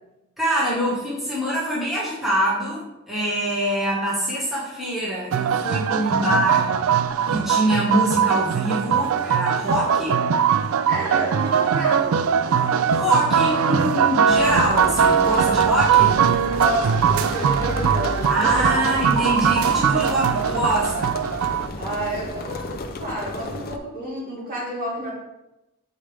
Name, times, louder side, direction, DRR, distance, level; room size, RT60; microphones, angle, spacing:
voice 1, 0.4-6.7 7.3-10.1 12.9-16.2 18.3-21.2, equal, ahead, -9 dB, 1.5 m, -24 dB
sound 1, 5.3-21.7, right 7 dB, 65° right, 0.3 m, -21 dB
voice 2, 10.9-12.3 16.6-19.1 21.8-25.1, equal, 40° right, -5 dB, 2.3 m, -30 dB
sound 2, 14.3-23.8, left 2 dB, 45° left, 0.5 m, -32 dB
7.2 x 4.7 x 3.4 m, 0.93 s
head